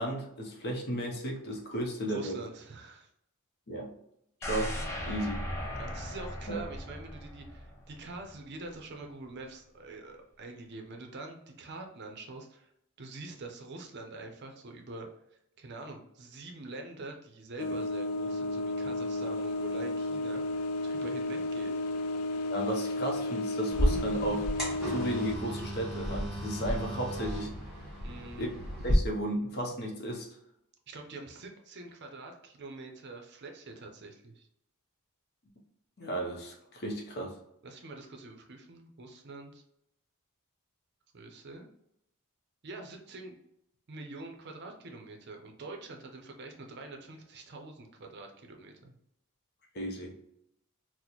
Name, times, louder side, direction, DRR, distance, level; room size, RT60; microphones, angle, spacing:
voice 1, 0.0-2.4 3.7-3.9 4.4-5.4 6.5-6.6 22.5-24.5 24.9-27.5 28.4-28.5 28.8-30.3 36.0-37.3 49.7-50.2, right 1 dB, 50° left, 0 dB, 0.7 m, -34 dB
voice 2, 2.1-3.1 5.8-12.7 13.0-15.1 15.6-21.7 28.0-28.5 30.9-34.5 37.6-39.6 41.1-41.6 42.6-43.4 43.9-48.9, right 2 dB, 50° right, 3 dB, 0.5 m, -45 dB
sound 1, 4.4-8.4 8.8-8.9, equal, 10° left, 0.5 m, -38 dB
sound 2, 17.6-25.4, left 1 dB, 80° left, 0.3 m, -33 dB
sound 3, 23.7-28.9, equal, 5° right, 1.4 m, -33 dB
4.0 x 2.1 x 2.9 m, 0.77 s
head